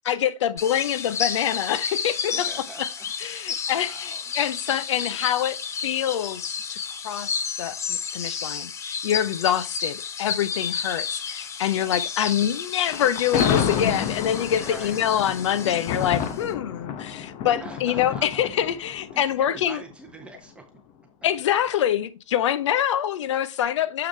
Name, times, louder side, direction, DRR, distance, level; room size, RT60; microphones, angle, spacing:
voice 1, 0.1-2.5 3.2-5.6 5.8-6.8 7.0-19.8 21.2-24.1, left 10 dB, 60° left, 0.8 m, -25 dB
sound 1, 0.6-16.5, left 6 dB, 15° left, 0.7 m, -32 dB
voice 2, 2.3-4.3 4.7-5.3 11.7-12.0 14.6-15.0 17.6-18.5 19.1-20.6 23.8-23.9, right 3 dB, 5° right, 1.2 m, -45 dB
Thunder, 12.9-20.1, left 8 dB, 35° left, 1.0 m, -29 dB
7.2 x 6.2 x 3.3 m
hypercardioid pair, 110°, 17 cm